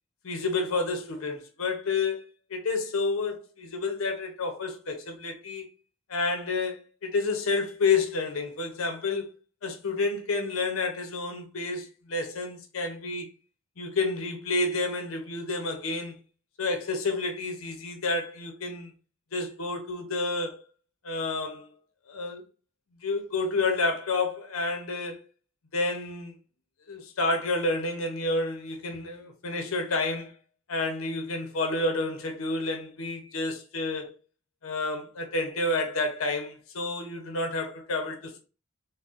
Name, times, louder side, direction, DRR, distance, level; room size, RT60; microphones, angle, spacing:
voice 1, 0.2-2.2 2.5-5.7 6.1-9.3 9.6-13.3 13.8-16.2 16.6-18.9 19.3-20.6 21.0-21.7 22.1-22.4 23.0-25.2 25.7-26.3 26.9-30.3 30.7-34.1 34.6-38.4, left 3 dB, 70° left, 0.7 m, -29 dB
3.9 x 2.1 x 2.4 m
head